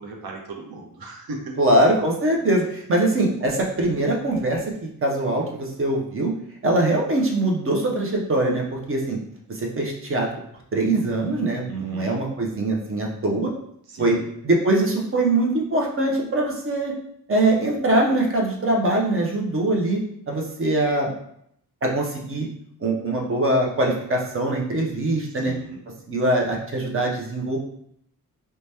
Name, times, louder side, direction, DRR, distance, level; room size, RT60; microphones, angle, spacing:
voice 1, 0.0-1.6 11.7-12.2 13.9-14.3 25.2-25.9, right 2 dB, 80° right, 0 dB, 0.7 m, -37 dB
voice 2, 1.6-6.3 6.6-9.2 9.5-10.3 10.7-13.5 14.0-14.2 14.4-16.9 17.3-20.0 20.3-21.1 21.8-22.5 22.8-25.5 26.1-27.6, right 1 dB, 35° right, 0 dB, 0.6 m, -22 dB
2.8 x 2.2 x 3.3 m, 0.71 s
wide cardioid pair, 150°, 36 cm